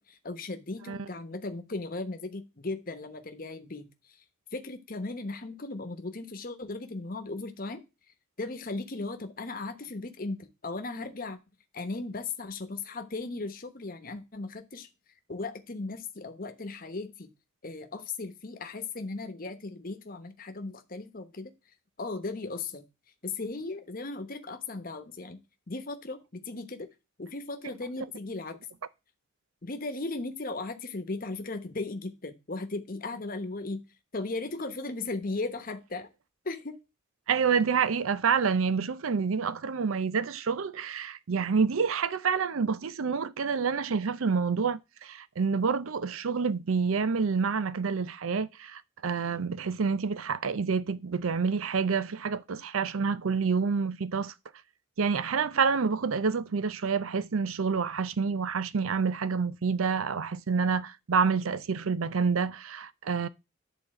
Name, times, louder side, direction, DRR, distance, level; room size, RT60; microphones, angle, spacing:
voice 1, 0.1-4.2 4.5-7.8 8.4-11.4 11.7-14.9 15.3-17.3 17.6-21.5 22.0-22.8 23.2-25.4 25.7-26.9 27.2-28.6 29.6-33.8 34.1-36.1 36.4-36.8, left 3 dB, 45° left, 1.1 m, -37 dB
voice 2, 37.3-54.3 55.0-63.3, right 5 dB, 85° right, 0.6 m, -28 dB
11.0 x 4.1 x 7.7 m
head